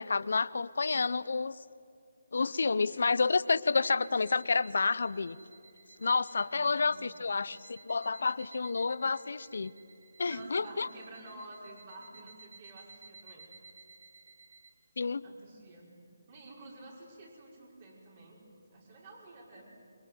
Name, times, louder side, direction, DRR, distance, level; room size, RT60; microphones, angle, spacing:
voice 1, 0.0-1.5 2.3-5.4 6.0-9.7 10.2-10.9 15.0-15.2, left 4 dB, 65° left, 17 dB, 0.8 m, -29 dB
sound 1, 3.7-14.7, right 4 dB, 65° right, 2.1 m, -56 dB
voice 2, 6.5-7.2 10.2-13.5 15.2-16.0 16.3-18.4 18.7-19.7, right 2 dB, 40° right, -2 dB, 5.6 m, -50 dB
26.5 x 23.0 x 9.5 m, 2.6 s
figure-of-eight pair, 160°, 0 cm